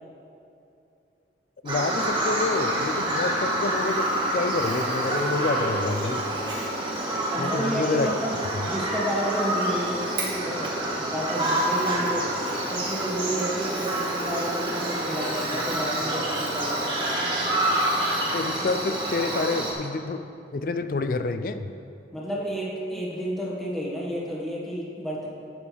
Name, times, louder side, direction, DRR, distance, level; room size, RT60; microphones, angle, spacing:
voice 1, 1.6-6.3 7.4-8.1 18.3-20.2 20.5-21.7, left 3 dB, 50° left, 10 dB, 0.4 m, -28 dB
Bird vocalization bird call bird song, 1.7-19.7, right 1 dB, 25° right, 1.7 m, -27 dB
voice 2, 7.3-8.3 8.7-10.7 11.0-12.3 12.7-17.1 22.1-25.3, equal, ahead, -6 dB, 1.6 m, -31 dB
11.5 x 8.4 x 3.4 m, 2.6 s
head